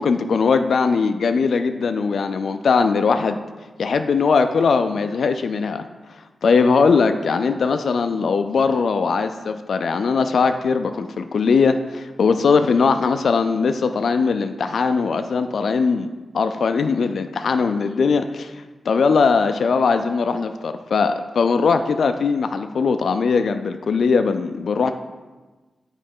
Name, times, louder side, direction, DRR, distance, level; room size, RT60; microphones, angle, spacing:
voice 1, 0.0-3.4 3.8-5.8 6.4-16.1 16.3-18.5 18.9-24.9, left 5 dB, 65° left, 8 dB, 0.3 m, -20 dB
8.6 x 3.2 x 5.4 m, 1.2 s
wide cardioid pair, 165°, 0 cm